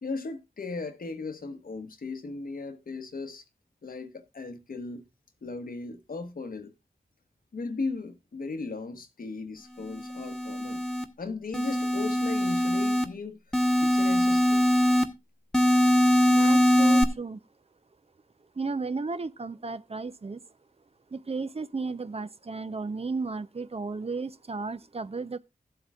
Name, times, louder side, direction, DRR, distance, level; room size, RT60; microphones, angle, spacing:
voice 1, 0.0-3.4 3.8-5.0 5.4-6.7 7.5-10.8 11.2-13.4 13.8-14.7, left 3 dB, 80° left, 1.1 m, -37 dB
sound 1, 9.9-11.0 11.5-13.0 13.5-15.0 15.5-17.0, left 1 dB, 5° left, 1.1 m, -22 dB
voice 2, 16.3-17.4 18.6-20.4 21.1-25.4, right 4 dB, 45° right, 0.6 m, -34 dB
14.5 x 7.9 x 2.4 m
cardioid pair, 50°, 15 cm